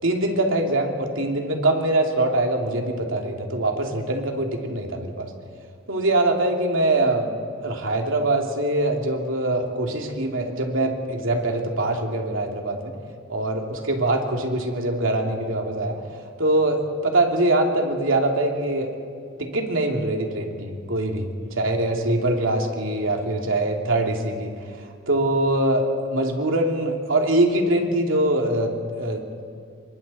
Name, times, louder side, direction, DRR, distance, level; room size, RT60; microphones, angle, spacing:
voice 1, 0.0-5.3 5.9-7.3 7.6-12.9 13.3-16.0 16.4-18.9 19.4-21.3 21.6-29.3, right 1 dB, 80° right, 1 dB, 2.8 m, -23 dB
28.0 x 23.5 x 4.3 m, 2.3 s
head